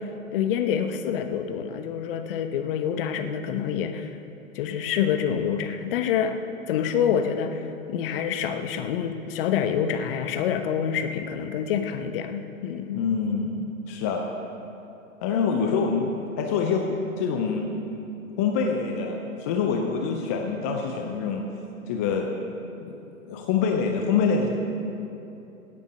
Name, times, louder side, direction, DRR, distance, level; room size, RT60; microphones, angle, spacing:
voice 1, 0.0-4.1 4.5-6.4 6.7-13.0, left 8 dB, 40° left, 8 dB, 1.1 m, -27 dB
voice 2, 12.9-14.2 15.2-16.1 16.4-16.9 17.2-17.7 18.4-21.4 21.9-22.3 22.9-23.0 23.3-24.5, left 5 dB, 10° left, 2 dB, 0.4 m, -25 dB
17.0 x 8.5 x 6.4 m, 2.8 s
figure-of-eight pair, 115°, 42 cm